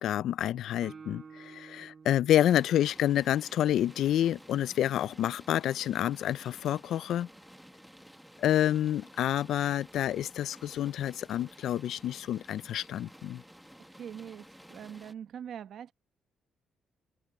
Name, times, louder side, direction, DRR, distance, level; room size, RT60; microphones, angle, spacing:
voice 1, 0.0-7.3 8.4-13.4, left 11 dB, 75° left, 0.5 m, -28 dB
Guitar, 0.8-4.5, right 5 dB, 40° right, 5.6 m, -52 dB
sound 1, 2.3-15.1, equal, ahead, 1.8 m, -53 dB
voice 2, 13.9-15.9, right 8 dB, 65° right, 1.0 m, -43 dB
cardioid pair, 90°, 0 cm